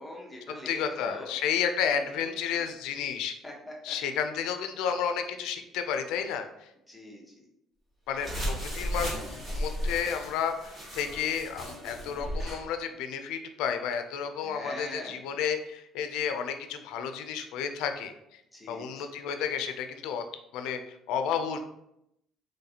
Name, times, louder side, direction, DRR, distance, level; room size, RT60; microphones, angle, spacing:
voice 1, 0.0-1.4 2.5-2.6 3.4-3.7 6.9-7.5 11.9-12.4 14.4-15.2 18.5-19.2, left 1 dB, 5° left, -3 dB, 0.8 m, -44 dB
voice 2, 0.7-3.3 3.8-6.7 8.1-18.4 18.7-20.2 20.5-21.6, left 7 dB, 85° left, 7 dB, 0.4 m, -32 dB
sound 1, 8.2-12.6, equal, 15° right, 1.2 m, -35 dB
4.0 x 3.1 x 2.8 m, 0.82 s
cardioid pair, 165°, 0 cm